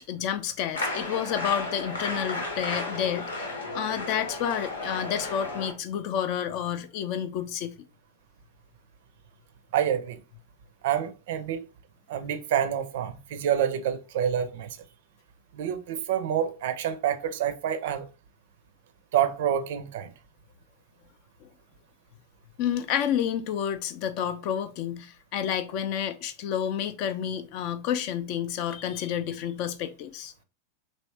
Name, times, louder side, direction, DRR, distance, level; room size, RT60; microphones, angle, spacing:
voice 1, 0.0-7.8 21.4-21.5 22.6-30.3, left 9 dB, 45° left, 0.4 m, -30 dB
sound 1, 0.7-5.7, left 2 dB, 70° left, 0.8 m, -33 dB
voice 2, 9.7-10.2 10.8-11.6 12.1-14.8 15.5-18.1 19.1-20.1, right 9 dB, 55° right, 0.5 m, -27 dB
3.3 x 2.7 x 3.2 m
figure-of-eight pair, 90°, 0 cm